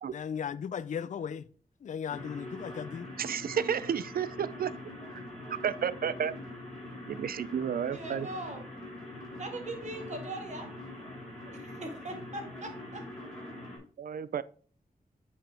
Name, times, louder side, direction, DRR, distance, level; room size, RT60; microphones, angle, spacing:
voice 1, 0.1-1.4 1.8-3.1, left 7 dB, 55° left, 0.4 m, -36 dB
sound 1, 2.1-13.8, left 1 dB, 5° left, 3.8 m, -43 dB
voice 2, 3.2-4.7 5.1-5.2 5.6-6.3 7.1-8.3 14.0-14.4, right 8 dB, 75° right, 0.4 m, -31 dB
voice 3, 7.9-8.7 9.4-10.7 11.5-13.0, right 2 dB, 50° right, 1.7 m, -40 dB
8.8 x 5.1 x 3.4 m
wide cardioid pair, 145°, 15 cm